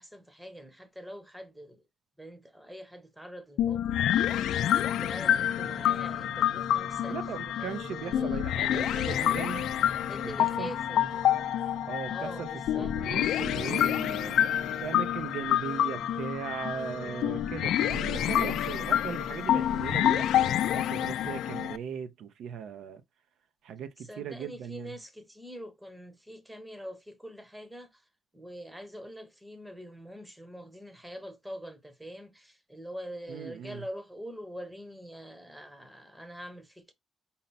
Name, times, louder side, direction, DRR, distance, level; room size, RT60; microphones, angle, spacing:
voice 1, 0.0-1.8 2.2-7.2 7.6-9.3 10.1-11.0 12.1-13.0 16.8-17.3 24.0-28.0 28.3-36.9, equal, 5° right, 0.8 m, -44 dB
sound 1, 3.6-21.8, left 11 dB, 85° left, 0.4 m, -28 dB
sound 2, 5.6-20.0, right 1 dB, 45° right, 0.8 m, -46 dB
voice 2, 7.1-9.7 10.4-10.7 11.3-11.4 11.9-14.4 14.8-23.0 23.6-24.9 33.3-33.8, right 8 dB, 75° right, 0.5 m, -38 dB
5.5 x 2.1 x 3.9 m
cardioid pair, 155°, 0 cm